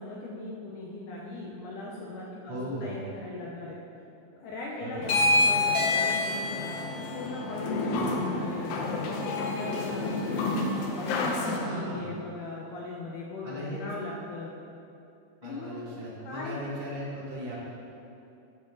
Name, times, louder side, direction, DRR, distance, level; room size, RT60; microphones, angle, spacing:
voice 1, 0.0-3.8 4.4-6.7 7.1-10.7 10.9-14.5 15.4-15.9 16.2-16.6, left 2 dB, 70° left, -4 dB, 2.3 m, -39 dB
voice 2, 2.5-3.0 4.8-5.3 11.6-12.1 13.4-13.8 15.4-17.5, equal, 45° right, -7 dB, 2.9 m, -37 dB
sound 1, 5.0-11.6, left 2 dB, 90° left, 2.7 m, -28 dB
13.5 x 7.0 x 4.0 m, 2.8 s
omnidirectional pair, 4.0 m